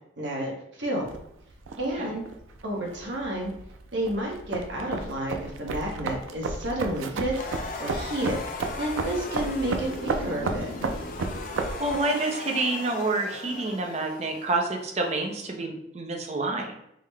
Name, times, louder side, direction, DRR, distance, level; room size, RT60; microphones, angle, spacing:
voice 1, 0.2-0.5 0.8-1.2 1.8-2.3 2.6-3.5 3.9-7.4 7.8-8.4 8.8-10.7, right 1 dB, 70° right, -1 dB, 1.0 m, -30 dB
sound 1, 1.0-12.0, right 3 dB, 85° right, 0.4 m, -33 dB
sound 2, 7.4-15.5, left 3 dB, 45° left, 0.4 m, -38 dB
voice 2, 11.8-16.8, right 2 dB, 35° right, 2 dB, 0.5 m, -28 dB
3.7 x 2.1 x 3.3 m, 0.77 s
head